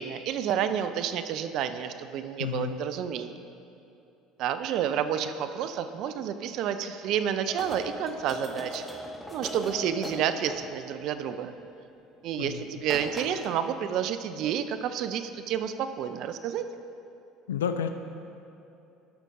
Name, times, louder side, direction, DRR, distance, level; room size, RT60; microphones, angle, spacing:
voice 1, 0.0-3.3 4.4-8.8 9.3-11.5 12.2-16.6, right 9 dB, 60° right, 10 dB, 0.5 m, -30 dB
voice 2, 2.4-2.8 12.4-12.7 17.5-17.9, left 8 dB, 85° left, 8 dB, 0.3 m, -30 dB
sound 1, 7.5-10.9 12.4-12.6 12.8-13.6, left 1 dB, 5° left, 1.2 m, -39 dB
12.5 x 5.2 x 3.7 m, 2.7 s
hypercardioid pair, 70°, 0 cm